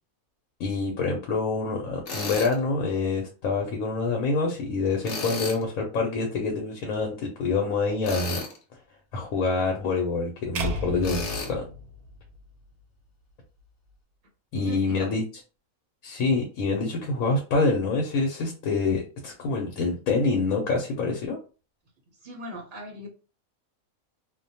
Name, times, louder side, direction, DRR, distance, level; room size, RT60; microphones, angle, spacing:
voice 1, 0.6-8.4 9.1-11.6 14.5-15.2 16.0-21.4, left 3 dB, 75° left, 1 dB, 1.0 m, -26 dB
Tools, 2.1-2.5 5.0-5.6 8.0-8.6 11.0-11.5, left 3 dB, 60° left, 0.9 m, -32 dB
sound 1, 10.6-12.8, equal, 85° right, 1.1 m, -34 dB
voice 2, 14.5-15.1 22.2-23.1, equal, 50° right, -1 dB, 0.7 m, -39 dB
2.4 x 2.1 x 2.7 m, 0.33 s
omnidirectional pair, 1.5 m